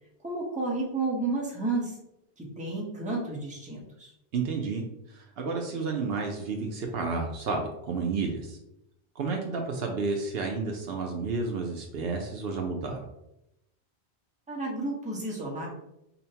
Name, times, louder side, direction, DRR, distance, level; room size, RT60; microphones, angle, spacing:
voice 1, 0.2-2.0 2.4-4.1 14.5-15.7, right 3 dB, 10° right, -3 dB, 0.7 m, -31 dB
voice 2, 4.3-4.8 5.1-8.6 9.2-13.0, right 4 dB, 65° right, 2 dB, 0.8 m, -31 dB
5.4 x 2.1 x 2.8 m, 0.85 s
omnidirectional pair, 1.1 m